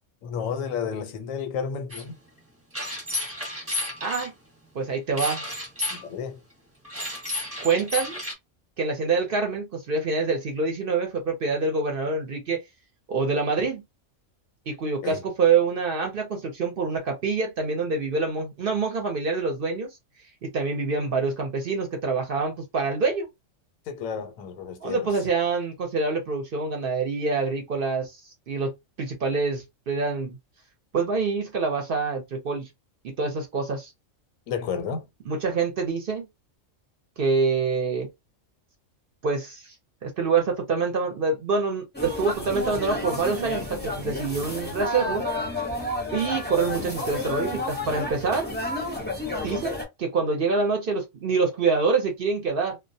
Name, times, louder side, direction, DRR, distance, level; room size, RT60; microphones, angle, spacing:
voice 1, 0.2-2.2 5.9-6.4 15.0-15.3 23.9-25.2 34.5-35.1, left 6 dB, 85° left, 1.0 m, -32 dB
sound 1, 1.9-2.0 2.7-4.3 5.2-6.0 6.8-8.3, left 2 dB, 10° right, 0.8 m, -31 dB
voice 2, 4.0-4.3 4.7-5.4 7.6-8.2 8.8-12.6 13.1-13.8 14.7-19.9 20.4-23.3 24.8-28.2 28.5-30.4 30.9-32.7 33.0-33.9 35.3-36.2 37.2-38.1 39.2-39.7 40.0-45.3 46.1-48.5 49.4-52.8, right 4 dB, 55° right, 0.7 m, -26 dB
sound 2, 41.9-49.8, left 2 dB, 10° left, 0.5 m, -31 dB
2.3 x 2.1 x 2.6 m
omnidirectional pair, 1.3 m